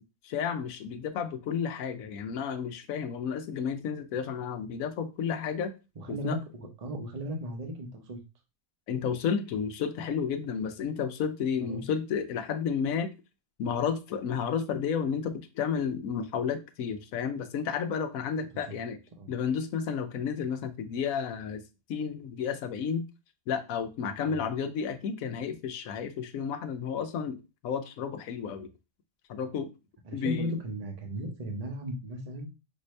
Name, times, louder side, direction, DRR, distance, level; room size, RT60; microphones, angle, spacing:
voice 1, 0.2-5.7 6.1-6.4 8.9-13.1 13.6-19.0 19.3-21.6 21.9-23.1 23.5-27.4 27.6-28.7 29.3-29.7 30.1-30.5, left 7 dB, 80° left, 8 dB, 1.1 m, -32 dB
voice 2, 6.0-8.2 11.6-11.8 18.7-18.8 19.2-19.3 24.3-24.4 30.0-32.5, equal, 35° right, 3 dB, 0.8 m, -36 dB
5.9 x 2.7 x 3.2 m, 0.28 s
omnidirectional pair, 1.4 m